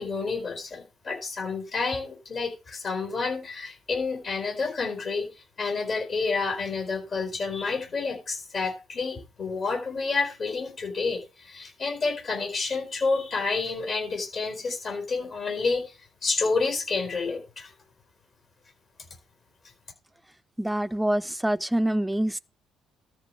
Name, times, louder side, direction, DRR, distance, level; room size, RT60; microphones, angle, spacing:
voice 1, 0.0-15.9 16.2-17.7, left 4 dB, 45° left, 4.4 m, -29 dB
voice 2, 20.6-22.4, right 1 dB, 5° right, 0.4 m, -25 dB
13.0 x 4.7 x 4.6 m
hypercardioid pair, 50°, 0 cm